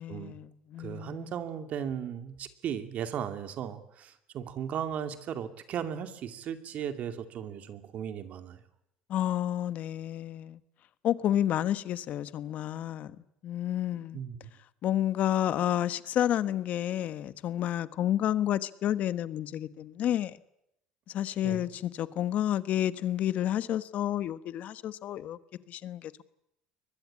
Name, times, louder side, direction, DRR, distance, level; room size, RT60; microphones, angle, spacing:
voice 1, 0.0-1.3 9.1-10.6 11.0-13.2 13.4-14.2 14.8-20.4 21.1-25.4 25.7-26.2, left 11 dB, 55° left, 1.2 m, -30 dB
voice 2, 0.8-8.6 14.1-14.4 21.4-21.7, right 9 dB, 55° right, 2.5 m, -36 dB
23.0 x 20.5 x 8.7 m
supercardioid pair, 90°, 3 cm